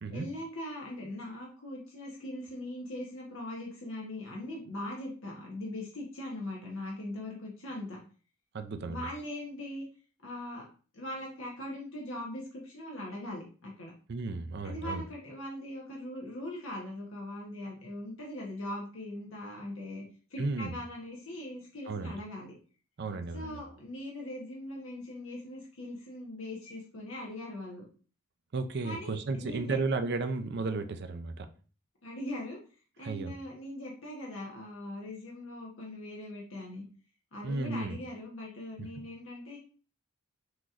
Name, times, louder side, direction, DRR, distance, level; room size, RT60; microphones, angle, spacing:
voice 1, 0.1-8.0 8.9-9.8 10.2-10.7 10.9-13.9 14.6-20.0 20.3-22.5 23.3-27.8 28.8-29.8 32.0-32.6 33.0-36.8 37.3-39.6, left 1 dB, 65° left, -2 dB, 1.0 m, -40 dB
voice 2, 8.5-9.1 14.1-15.0 20.4-20.7 21.9-22.1 23.0-23.6 28.5-31.5 33.0-33.3 37.4-38.0 38.8-38.9, right 3 dB, 50° right, 8 dB, 0.5 m, -34 dB
6.0 x 3.0 x 2.4 m, 0.39 s
head